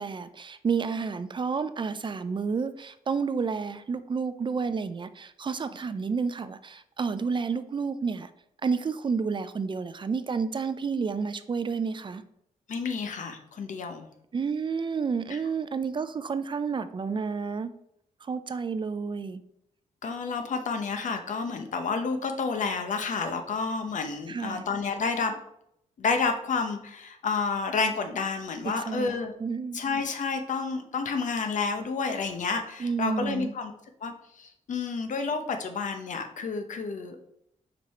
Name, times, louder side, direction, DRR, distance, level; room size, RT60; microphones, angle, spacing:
voice 1, 0.0-8.3 8.6-12.2 14.3-17.7 18.2-19.4 24.3-24.6 28.8-29.8 32.8-33.5, right 5 dB, 35° right, 12 dB, 0.4 m, -30 dB
voice 2, 12.7-14.1 15.3-15.4 20.0-25.4 26.0-29.3 29.7-33.7 34.0-37.2, left 4 dB, 70° left, 7 dB, 0.9 m, -30 dB
5.2 x 4.7 x 4.2 m, 0.75 s
wide cardioid pair, 105°, 14 cm